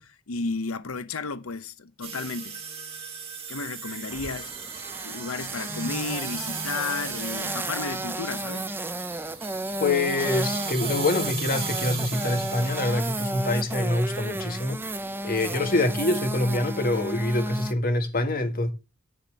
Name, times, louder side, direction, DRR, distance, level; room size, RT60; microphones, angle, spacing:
voice 1, 0.0-2.6 3.5-4.5 5.0-8.7, left 4 dB, 75° left, 0.8 m, -33 dB
sound 1, 2.0-14.3, right 4 dB, 30° right, 2.4 m, -37 dB
sound 2, 4.1-17.7, right 2 dB, 10° right, 0.5 m, -33 dB
voice 2, 9.8-14.8 15.2-18.7, left 2 dB, 45° left, 1.8 m, -25 dB
10.0 x 4.3 x 7.5 m
head